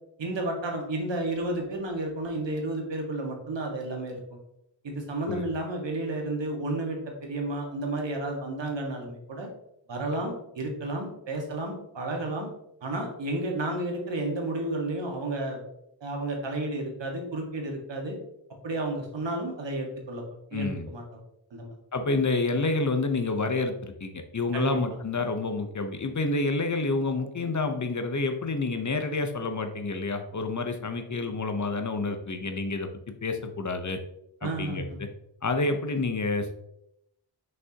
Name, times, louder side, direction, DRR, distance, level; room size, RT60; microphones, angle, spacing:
voice 1, 0.2-4.2 4.8-9.5 9.9-12.5 12.8-15.6 16.0-18.2 18.6-20.2 20.5-21.0 21.5-21.7 24.5-24.8 34.4-35.0, right 2 dB, 70° right, 1 dB, 1.8 m, -32 dB
voice 2, 20.5-20.9 21.9-32.9 33.2-34.0 34.4-34.9 35.4-36.5, left 3 dB, 40° left, 7 dB, 0.9 m, -28 dB
6.2 x 5.4 x 2.9 m, 0.79 s
cardioid pair, 55°, 45 cm